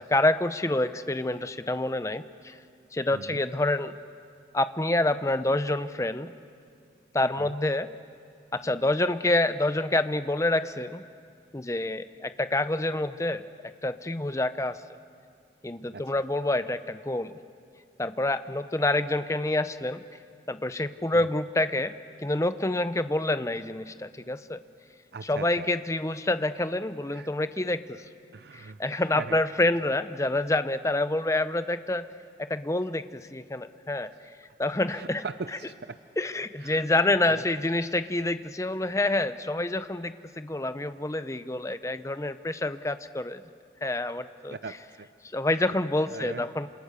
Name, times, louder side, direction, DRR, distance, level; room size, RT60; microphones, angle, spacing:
voice 1, 0.0-2.6 2.9-3.9 4.5-6.3 7.1-7.9 8.5-11.0 11.5-13.4 13.8-14.8 15.6-17.3 18.0-20.0 20.5-21.9 22.2-24.6 25.3-28.0 28.5-32.1 32.4-34.1 34.6-35.2 36.2-43.4 43.8-44.6 45.3-46.7, left 2 dB, 15° left, 12 dB, 0.6 m, -27 dB
voice 2, 3.1-3.4 7.4-7.5 15.9-16.0 21.1-21.3 25.1-25.7 27.1-27.3 28.3-29.4 34.1-34.3 34.9-36.0 36.6-36.9 37.3-37.4 44.5-45.1 45.5-46.4, right 4 dB, 65° right, 11 dB, 0.5 m, -41 dB
27.5 x 27.5 x 6.8 m, 2.3 s
head